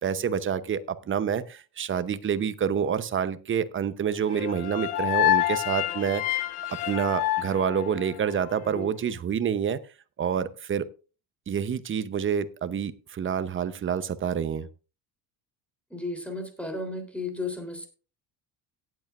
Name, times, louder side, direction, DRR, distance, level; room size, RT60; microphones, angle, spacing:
voice 1, 0.0-6.2 6.9-9.8 10.2-10.9 11.5-14.7, right 8 dB, 30° right, 13 dB, 0.8 m, -28 dB
sound 1, 4.3-8.5, left 15 dB, 70° left, 1.4 m, -27 dB
voice 2, 15.9-17.9, left 2 dB, 5° left, 5 dB, 3.5 m, -34 dB
18.0 x 8.4 x 2.5 m, 0.34 s
cardioid pair, 120°, 41 cm